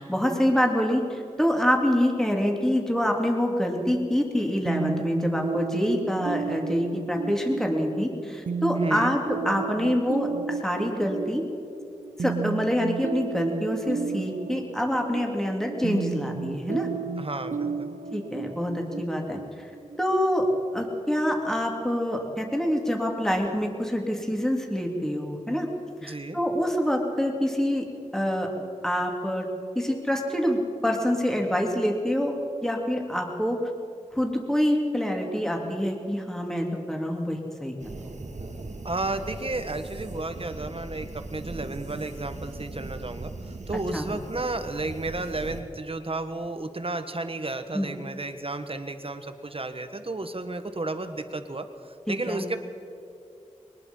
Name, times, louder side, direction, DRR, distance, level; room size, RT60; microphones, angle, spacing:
voice 1, 0.0-11.4 12.2-16.9 18.1-19.7 20.0-20.5 20.7-25.7 26.0-27.8 28.1-28.5 28.8-29.5 29.7-32.3 32.6-33.6 34.1-37.7 43.9-44.0 47.7-47.9 52.1-52.4, equal, 5° left, 1 dB, 3.3 m, -26 dB
sound 1, 4.7-20.2, right 5 dB, 85° right, 0.6 m, -34 dB
voice 2, 8.7-9.1 17.2-17.9 26.0-26.4 38.8-52.6, right 2 dB, 45° right, 8 dB, 1.6 m, -33 dB
sound 2, 37.8-45.6, right 2 dB, 70° right, 1.8 m, -39 dB
22.5 x 20.0 x 5.7 m, 2.6 s
wide cardioid pair, 60°, 13 cm